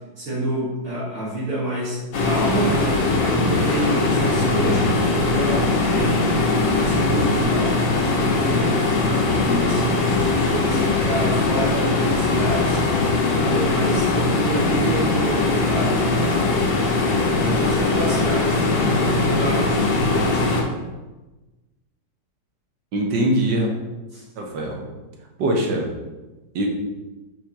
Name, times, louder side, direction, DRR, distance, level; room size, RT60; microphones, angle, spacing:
voice 1, 0.2-8.8 9.4-12.8 13.3-16.0 17.4-20.4 20.7-20.8 24.1-24.2, right 1 dB, 50° right, -7 dB, 2.3 m, -28 dB
sound 1, 2.1-20.6, left 3 dB, 90° left, 2.0 m, -20 dB
voice 2, 22.9-23.7 24.4-24.8 25.4-25.9 26.6-26.7, right 1 dB, 75° right, 1 dB, 1.8 m, -22 dB
8.8 x 4.8 x 2.9 m, 1.1 s
omnidirectional pair, 2.0 m